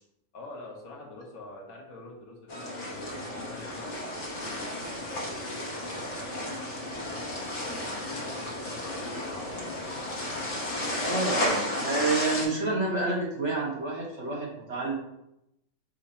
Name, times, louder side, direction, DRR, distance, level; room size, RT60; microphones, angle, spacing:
voice 1, 0.3-5.5 5.8-6.6 7.1-10.1 11.2-11.5, left 2 dB, 70° left, -1 dB, 1.4 m, -46 dB
sound 1, 2.5-12.5, left 1 dB, 55° left, 1.1 m, -33 dB
sound 2, 2.9-11.5, left 2 dB, 35° left, 0.8 m, -47 dB
voice 2, 11.0-14.9, right 3 dB, 55° right, -4 dB, 1.3 m, -29 dB
5.7 x 2.1 x 4.2 m, 0.84 s
omnidirectional pair, 1.5 m